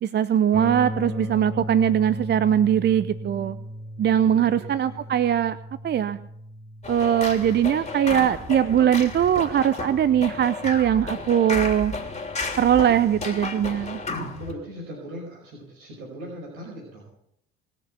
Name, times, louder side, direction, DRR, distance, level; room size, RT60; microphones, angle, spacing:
voice 1, 0.0-3.6 4.0-5.6 5.8-6.2 6.9-11.9 12.6-14.0, right 9 dB, 30° right, 14 dB, 0.6 m, -21 dB
sound 1, 0.5-10.4, equal, 5° left, 1.4 m, -37 dB
voice 2, 4.2-5.1 14.4-17.1, equal, 65° right, -2 dB, 5.2 m, -39 dB
sound 2, 6.8-14.5, left 3 dB, 20° left, 3.2 m, -33 dB
20.0 x 6.8 x 8.3 m, 0.76 s
figure-of-eight pair, 60°, 33 cm